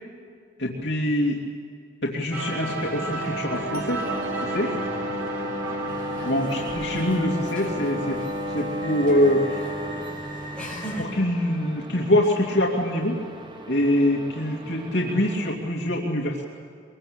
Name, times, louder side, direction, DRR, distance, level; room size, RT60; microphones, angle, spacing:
voice 1, 0.6-1.4 2.0-4.0 4.4-4.8 6.2-9.6 11.0-13.2 13.7-16.4, left 1 dB, 60° left, -3 dB, 2.7 m, -24 dB
sound 1, 2.3-9.1, right 2 dB, 90° right, 4.7 m, -34 dB
sound 2, 4.0-15.5, equal, 25° right, 1.5 m, -34 dB
sound 3, 5.9-11.0, equal, 5° left, 6.1 m, -38 dB
24.5 x 22.5 x 8.9 m, 2.4 s
head